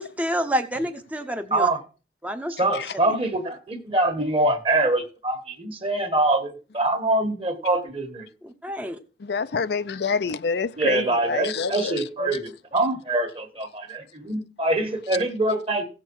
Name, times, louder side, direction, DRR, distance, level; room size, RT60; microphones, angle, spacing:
voice 1, 0.0-1.7 2.2-2.5 8.4-9.0, equal, 10° right, 0.7 m, -28 dB
voice 2, 1.5-1.8 2.5-8.3 10.8-15.8, right 2 dB, 30° right, 1.5 m, -24 dB
voice 3, 9.2-12.4, left 5 dB, 70° left, 0.5 m, -27 dB
16.0 x 6.7 x 4.6 m
head